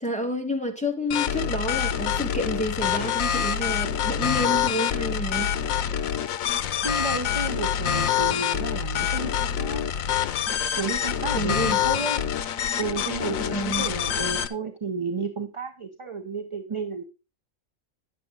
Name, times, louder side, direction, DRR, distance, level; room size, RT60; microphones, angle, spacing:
voice 1, 0.0-5.5 11.3-11.8 13.4-13.9, equal, 5° left, 1.6 m, -29 dB
sound 1, 1.1-14.5, left 9 dB, 90° left, 1.1 m, -26 dB
voice 2, 6.8-9.8 10.8-12.2 12.8-17.1, right 4 dB, 30° right, 0.7 m, -32 dB
10.5 x 7.6 x 3.9 m
omnidirectional pair, 1.4 m